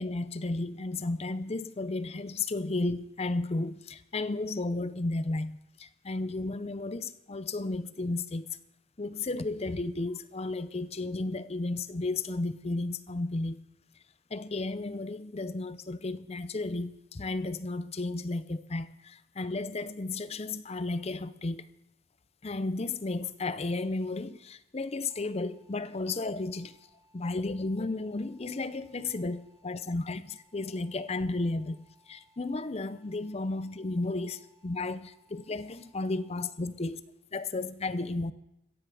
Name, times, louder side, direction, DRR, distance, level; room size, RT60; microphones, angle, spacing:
voice 1, 0.0-8.6 9.0-13.6 14.3-21.7 22.4-26.8 27.1-31.8 32.1-37.0 37.3-38.3, left 2 dB, 30° left, 0.5 m, -33 dB
sound 1, 25.1-36.5, equal, 5° right, 2.9 m, -66 dB
16.0 x 14.5 x 4.9 m
head